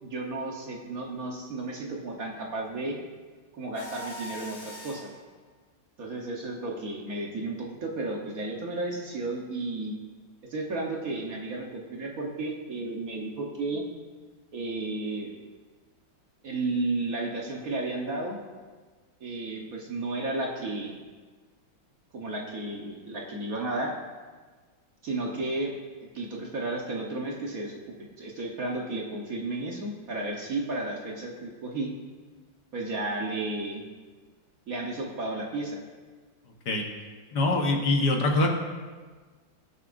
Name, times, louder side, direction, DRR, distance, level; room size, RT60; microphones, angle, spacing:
voice 1, 0.0-3.0 3.5-5.1 6.0-9.9 10.5-13.9 14.5-15.3 16.4-18.4 19.2-21.0 22.1-24.0 25.0-25.7 26.1-31.9 32.7-33.8 34.7-35.8, right 2 dB, 50° right, -1 dB, 1.4 m, -33 dB
Mechanisms, 3.7-5.2, equal, 30° left, 1.3 m, -42 dB
voice 2, 37.3-38.5, left 2 dB, 60° left, 1 dB, 1.6 m, -23 dB
19.5 x 7.2 x 2.6 m, 1.4 s
omnidirectional pair, 2.2 m